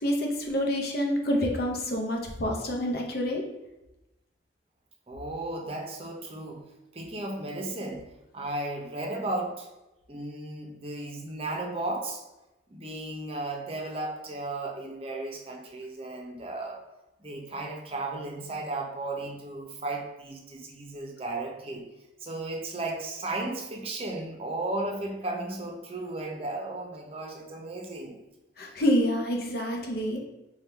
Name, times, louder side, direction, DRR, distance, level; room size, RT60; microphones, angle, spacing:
voice 1, 0.0-3.4 28.6-30.2, equal, 55° left, 1 dB, 0.7 m, -27 dB
voice 2, 5.1-6.6 6.9-8.0 8.3-9.7 10.1-12.2 12.7-16.8 17.2-21.8 22.2-28.2, right 2 dB, 30° right, 0 dB, 0.6 m, -35 dB
3.5 x 2.3 x 4.3 m, 0.97 s
head